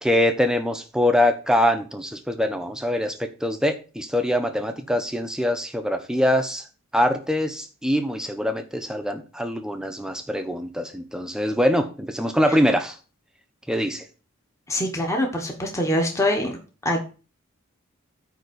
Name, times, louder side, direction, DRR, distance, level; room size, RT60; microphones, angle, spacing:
voice 1, 0.0-6.6 6.9-13.0 13.7-14.0, left 1 dB, 5° right, 6 dB, 0.9 m, -23 dB
voice 2, 14.7-16.6 16.8-17.1, left 1 dB, 15° left, 1 dB, 1.3 m, -24 dB
9.2 x 3.7 x 6.9 m, 0.35 s
head